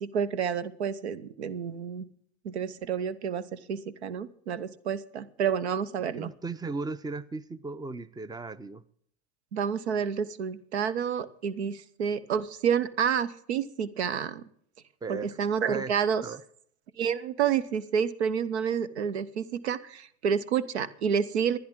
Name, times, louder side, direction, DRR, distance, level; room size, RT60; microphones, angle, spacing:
voice 1, 0.0-2.1 2.4-6.3 9.5-14.4 15.1-16.2 17.0-21.6, right 7 dB, 85° right, 0.9 m, -29 dB
voice 2, 6.2-8.8 15.0-15.4 15.7-15.9 16.2-16.4, right 4 dB, 10° right, 0.8 m, -36 dB
26.0 x 10.5 x 3.7 m
hypercardioid pair, 80°, 32 cm